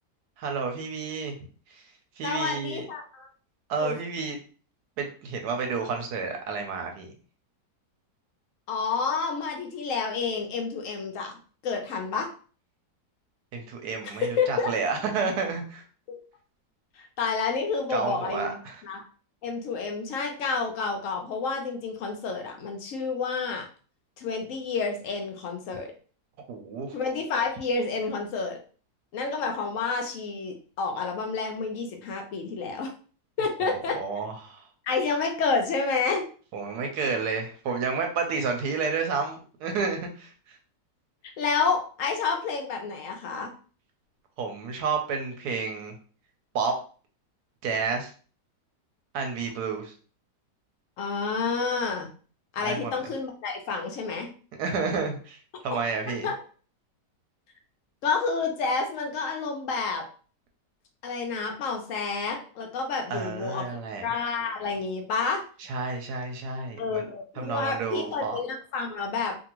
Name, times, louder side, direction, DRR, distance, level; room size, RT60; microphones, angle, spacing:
voice 1, 0.4-1.3 1.7-1.8 2.2-2.8 3.7-4.4 5.0-7.1 13.5-15.8 17.9-18.8 26.5-27.0 33.6-34.7 36.5-40.6 44.4-45.9 46.5-46.7 47.6-48.1 49.1-49.9 52.6-52.9 54.6-55.4 55.6-56.3 63.1-64.1 65.7-67.1 67.4-68.4, right 5 dB, 75° right, 4 dB, 1.1 m, -30 dB
voice 2, 2.2-3.3 3.8-4.0 8.7-11.3 11.6-12.3 14.0-14.7 16.1-16.2 17.0-18.6 18.8-19.0 19.4-23.7 24.2-25.9 26.9-28.6 29.1-32.9 33.4-34.0 34.8-36.3 41.4-43.5 51.0-52.1 52.5-54.3 55.7-55.8 56.2-56.4 58.0-60.0 61.0-63.6 64.0-65.4 66.8-69.4, left 4 dB, 75° left, 3 dB, 0.7 m, -29 dB
2.7 x 2.6 x 2.9 m, 0.40 s
omnidirectional pair, 1.9 m